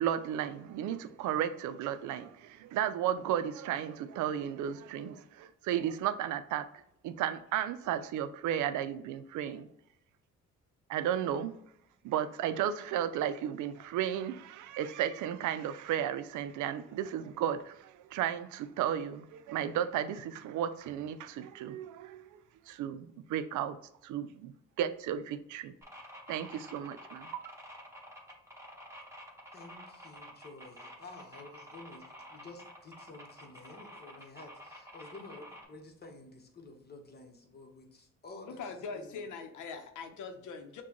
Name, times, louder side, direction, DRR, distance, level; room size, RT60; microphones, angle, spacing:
voice 1, 0.0-6.7 7.0-9.7 10.9-11.5 12.0-22.4 22.7-23.8 24.0-25.7 26.3-27.4, right 10 dB, 75° right, 11 dB, 0.4 m, -34 dB
sound 1, 25.8-35.6, equal, 10° right, 1.3 m, -50 dB
voice 2, 29.5-38.6 38.9-39.3, left 2 dB, 35° left, 2 dB, 1.0 m, -51 dB
voice 3, 38.4-40.8, left 5 dB, 75° left, 6 dB, 0.7 m, -42 dB
6.0 x 2.3 x 2.9 m, 0.77 s
cardioid pair, 90°, 30 cm